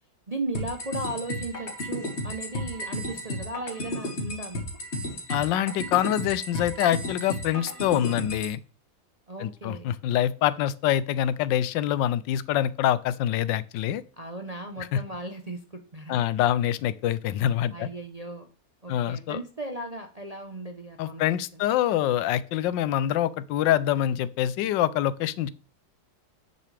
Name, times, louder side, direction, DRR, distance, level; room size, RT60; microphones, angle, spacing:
voice 1, 0.3-4.6 9.3-9.9 14.2-16.3 17.7-18.5 18.8-21.3 21.5-21.6, right 2 dB, 40° right, 0.5 m, -36 dB
sound 1, 0.5-8.5, left 1 dB, 35° left, 2.1 m, -33 dB
voice 2, 5.3-8.6 9.4-14.0 14.8-15.0 16.1-17.9 18.9-19.4 21.0-25.5, left 11 dB, 85° left, 1.3 m, -25 dB
10.0 x 6.8 x 3.3 m
omnidirectional pair, 1.9 m